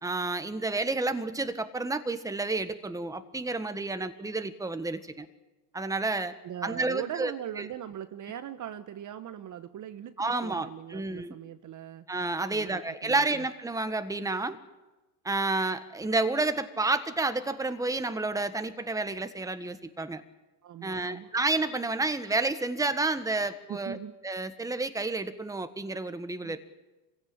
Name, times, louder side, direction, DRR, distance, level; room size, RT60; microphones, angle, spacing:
voice 1, 0.0-5.3 5.7-6.3 6.6-7.7 10.2-11.3 12.1-14.6 15.2-20.2 20.8-24.0 24.2-26.6, right 3 dB, 5° right, 10 dB, 1.5 m, -30 dB
voice 2, 6.4-10.2 10.4-12.1 12.5-13.4 20.6-21.3 23.7-24.1 26.4-26.6, right 10 dB, 35° right, 11 dB, 1.2 m, -40 dB
25.0 x 16.5 x 8.8 m, 1.1 s
supercardioid pair, 100°, 49 cm